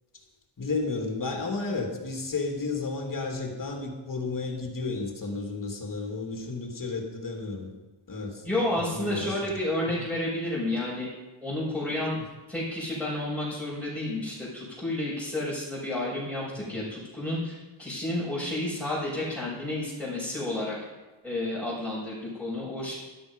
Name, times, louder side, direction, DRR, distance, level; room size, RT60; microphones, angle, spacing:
voice 1, 0.6-7.7 8.1-8.5 8.9-9.5 16.5-16.9, left 3 dB, 40° left, 1 dB, 2.7 m, -32 dB
voice 2, 8.4-11.1 11.4-12.2 12.5-20.8 21.2-22.9, left 1 dB, ahead, -10 dB, 5.8 m, -31 dB
13.0 x 11.5 x 5.4 m, 1.2 s
wide cardioid pair, 115°, 50 cm